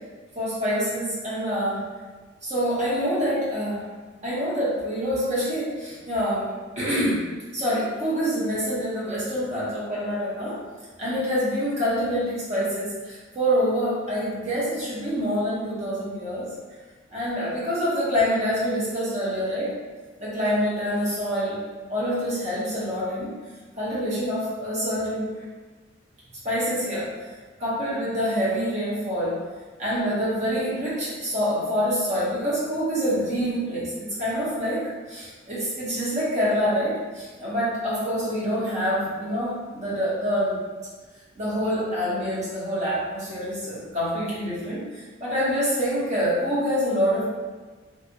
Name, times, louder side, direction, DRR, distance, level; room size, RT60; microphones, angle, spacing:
voice 1, 0.3-1.8 2.4-3.8 4.2-7.2 7.5-10.6 11.0-16.5 17.1-19.7 20.2-21.6 21.9-23.3 23.8-25.3 26.4-27.3 27.6-29.4 29.8-40.6 41.3-47.2, equal, 35° right, -9 dB, 1.1 m, -26 dB
2.7 x 2.4 x 2.7 m, 1.4 s
head